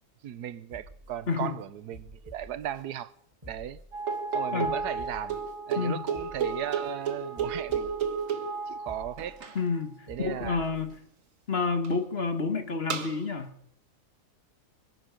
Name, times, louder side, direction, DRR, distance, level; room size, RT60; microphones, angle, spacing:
voice 1, 0.2-3.1 3.5-3.8 4.3-5.4 5.7-7.9 8.7-9.4 10.1-10.7, right 11 dB, 85° right, 1.4 m, -36 dB
sound 1, 0.7-1.5 1.9-2.8 3.3-4.2 4.6-5.5 6.0-6.9 7.3-8.3 8.7-9.6 10.1-11.0 11.4-11.5, right 1 dB, 20° right, 4.5 m, -49 dB
sound 2, 3.9-9.6 11.8-11.9 12.9-13.2, right 5 dB, 55° right, 1.7 m, -32 dB
voice 2, 9.5-10.9 11.5-13.5, left 4 dB, 40° left, 1.7 m, -29 dB
24.0 x 11.0 x 5.2 m
omnidirectional pair, 1.7 m